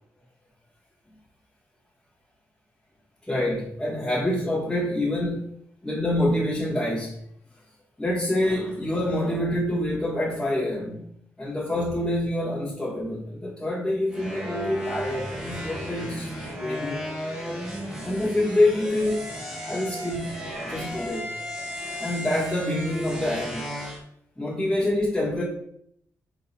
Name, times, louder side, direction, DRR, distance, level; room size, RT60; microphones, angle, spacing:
voice 1, 3.2-5.5 5.8-7.2 8.0-11.1 11.4-16.3 16.6-17.1 18.0-19.2 19.6-21.3 22.0-23.7 24.4-25.4, left 1 dB, 5° left, -8 dB, 1.8 m, -26 dB
sound 1, 14.1-24.0, equal, 10° right, 1.9 m, -34 dB
6.5 x 3.9 x 4.4 m, 0.70 s
cardioid pair, 90°, 6 cm